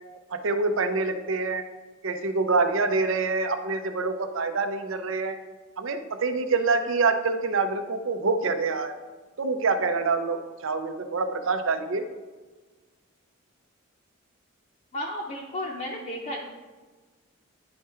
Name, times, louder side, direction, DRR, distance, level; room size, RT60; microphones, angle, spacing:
voice 1, 0.3-1.6 2.0-5.4 5.8-8.9 9.4-12.1, right 3 dB, 70° right, 8 dB, 0.6 m, -26 dB
voice 2, 14.9-16.4, left 1 dB, 35° left, -3 dB, 0.7 m, -33 dB
9.8 x 3.6 x 4.4 m, 1.3 s
head